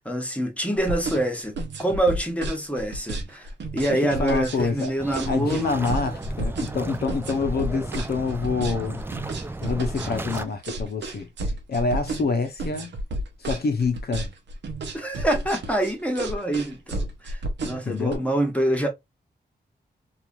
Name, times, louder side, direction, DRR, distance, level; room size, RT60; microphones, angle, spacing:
voice 1, 0.0-5.8 14.9-18.9, right 1 dB, 5° left, 1.0 m, -26 dB
sound 1, 0.8-18.2, right 1 dB, 85° right, 0.7 m, -31 dB
voice 2, 3.9-4.9 5.3-9.0 9.6-11.3 11.7-12.9 13.4-14.3 17.9-18.2, left 4 dB, 60° left, 0.7 m, -26 dB
sound 2, 5.0-10.5, right 2 dB, 10° right, 0.4 m, -35 dB
3.0 x 2.4 x 2.4 m
cardioid pair, 70°, 18 cm